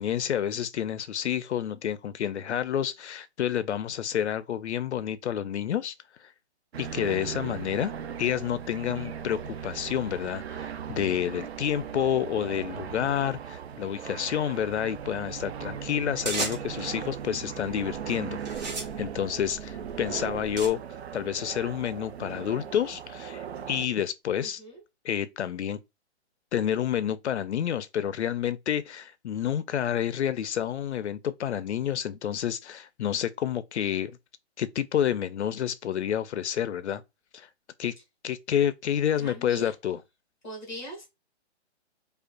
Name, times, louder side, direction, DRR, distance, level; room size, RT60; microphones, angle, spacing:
voice 1, 0.0-5.9 6.2-6.3 6.8-7.9 8.2-20.8 21.1-24.6 25.0-25.8 26.5-34.2 34.6-37.0 37.3-37.5 37.8-37.9 38.2-40.0, left 9 dB, 75° left, 0.5 m, -29 dB
sound 1, 6.7-23.9, right 8 dB, 65° right, 0.5 m, -38 dB
voice 2, 6.8-7.2 24.4-24.8 39.2-39.7 40.4-41.0, equal, ahead, 0.8 m, -41 dB
sound 2, 16.3-16.9 17.7-18.0 18.4-20.7, right 3 dB, 40° right, 0.8 m, -35 dB
5.0 x 2.4 x 2.2 m
hypercardioid pair, 175°, 34 cm